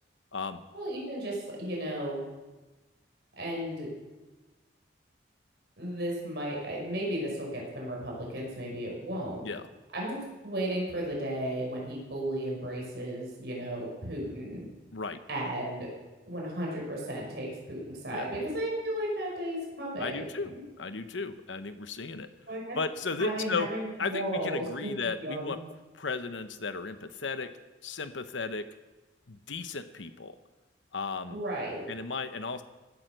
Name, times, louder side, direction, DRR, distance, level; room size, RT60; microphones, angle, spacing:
voice 1, 0.7-2.2 3.4-3.9 5.8-9.4 9.9-14.7 15.3-15.9 16.3-20.6 22.5-22.8 23.2-25.5 31.3-31.8, right 1 dB, 60° right, -2 dB, 5.7 m, -34 dB
voice 2, 20.0-22.3 22.7-23.7 24.0-25.6 25.9-27.5 27.8-28.7 29.3-30.4 30.9-31.4 31.9-32.6, left 4 dB, 80° left, 10 dB, 1.0 m, -35 dB
17.0 x 11.0 x 6.8 m, 1.2 s
head